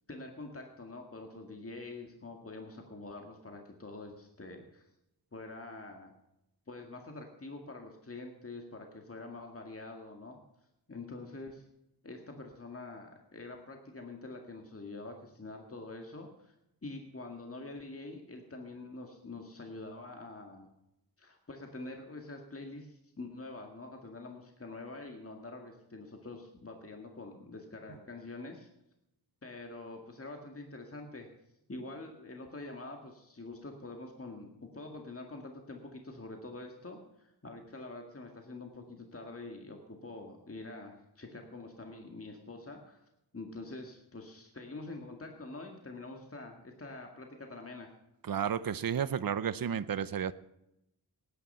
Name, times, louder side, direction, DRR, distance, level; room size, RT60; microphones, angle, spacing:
voice 1, 0.1-4.8 5.3-6.1 6.7-10.4 10.9-11.6 12.0-16.5 16.8-20.7 21.2-28.7 29.4-31.3 31.7-43.0 43.3-47.9, left 2 dB, 35° left, 3 dB, 2.0 m, -46 dB
voice 2, 48.2-50.3, right 8 dB, 60° right, 15 dB, 0.7 m, -32 dB
18.0 x 10.0 x 5.6 m, 0.85 s
wide cardioid pair, 85°, 40 cm